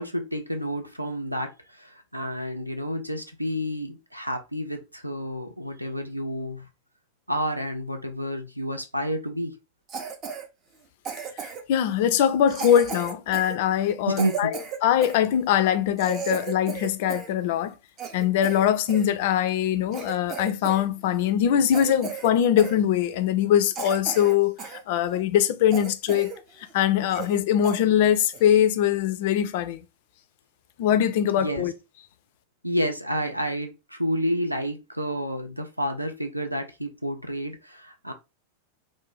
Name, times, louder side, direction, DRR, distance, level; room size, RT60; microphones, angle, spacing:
voice 1, 0.0-6.7 7.3-9.6 14.1-14.6 31.3-31.7 32.6-38.1, equal, 90° right, 0.4 m, -30 dB
Cough, 9.9-10.4 11.0-11.8 12.5-15.2 15.7-15.8 16.0-17.3 17.6-19.1 19.6-19.7 19.9-20.8 21.1-21.3 21.7-22.3 22.6-22.8 23.3-23.4 23.7-24.8 25.2-25.3 25.7-26.4 26.7-26.8 27.1-27.4 27.6-27.8 28.3-28.5, right 6 dB, 30° right, 0.5 m, -35 dB
voice 2, 11.4-14.5 14.8-17.7 18.1-26.3 26.7-29.8 30.8-31.7, left 10 dB, 50° left, 0.3 m, -22 dB
2.5 x 2.1 x 3.1 m
figure-of-eight pair, 90°, 0 cm